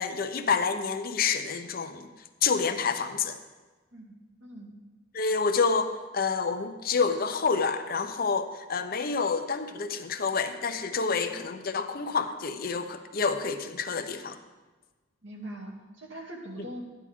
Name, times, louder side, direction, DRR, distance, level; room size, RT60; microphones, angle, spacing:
voice 1, 0.0-2.1 2.4-3.4 5.1-14.4, left 5 dB, 50° left, 8 dB, 0.7 m, -28 dB
voice 2, 15.2-16.8, right 1 dB, 70° right, -1 dB, 2.3 m, -41 dB
13.0 x 9.8 x 3.6 m, 1.2 s
head